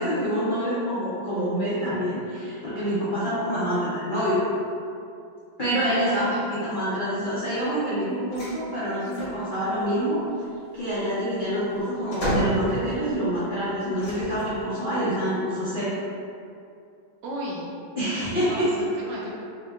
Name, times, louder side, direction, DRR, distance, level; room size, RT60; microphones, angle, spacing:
voice 1, 0.0-4.4 5.6-6.3 6.6-10.2 10.7-15.9 18.0-18.7, equal, 75° left, -12 dB, 0.4 m, -26 dB
voice 2, 5.8-6.4 17.2-17.7 18.3-19.3, right 1 dB, 75° right, -4 dB, 1.1 m, -35 dB
sound 1, 8.3-8.6 8.9-9.4 10.8-13.2 14.0-14.7, right 1 dB, 45° left, 1.3 m, -30 dB
3.6 x 2.1 x 3.4 m, 2.5 s
omnidirectional pair, 2.1 m